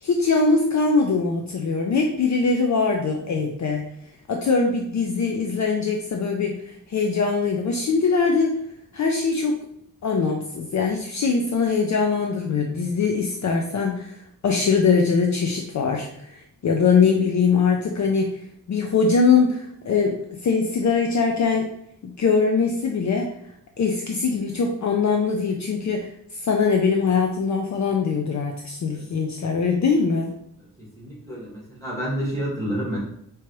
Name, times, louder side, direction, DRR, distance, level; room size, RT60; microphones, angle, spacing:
voice 1, 0.0-3.9 4.3-8.6 8.9-9.6 10.0-14.2 14.4-18.4 18.7-21.7 22.0-23.3 23.8-26.1 26.4-30.3, left 5 dB, 55° left, 2 dB, 0.5 m, -22 dB
voice 2, 30.8-33.0, equal, 10° left, -6 dB, 1.7 m, -29 dB
4.7 x 3.0 x 3.0 m, 0.73 s
wide cardioid pair, 160°, 35 cm